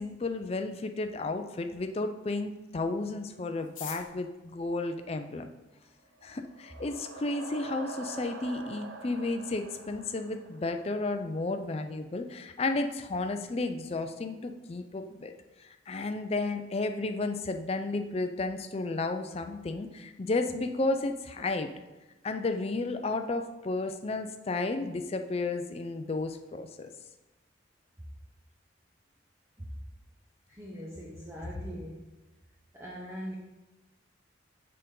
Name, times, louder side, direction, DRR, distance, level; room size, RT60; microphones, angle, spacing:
voice 1, 0.0-5.4 6.2-15.3 15.6-21.7 22.2-26.9, left 2 dB, 30° left, 7 dB, 0.4 m, -33 dB
sound 1, 3.6-5.8 6.6-6.7 6.9-7.0 7.3-7.8 8.1-8.2 8.4-8.8 9.1-9.3 9.7-10.0, left 8 dB, 85° left, 0.8 m, -47 dB
sound 2, 6.2-11.1, right 3 dB, 80° right, 0.7 m, -45 dB
voice 2, 30.5-32.0 32.7-33.4, equal, 15° right, -4 dB, 0.7 m, -41 dB
6.7 x 5.2 x 3.7 m, 1.1 s
head